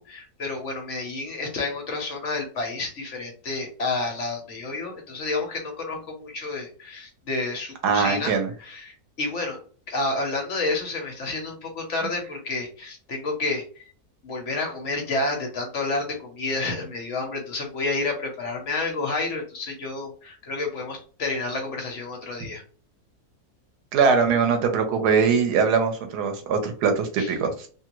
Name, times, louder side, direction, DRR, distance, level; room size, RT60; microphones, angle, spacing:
voice 1, 0.1-9.6 9.9-13.9 14.2-22.6 27.2-27.3, left 3 dB, 55° left, 1 dB, 1.0 m, -30 dB
voice 2, 7.8-8.5 23.9-27.7, right 5 dB, 85° right, 6 dB, 1.3 m, -22 dB
2.9 x 2.5 x 2.9 m, 0.42 s
omnidirectional pair, 1.7 m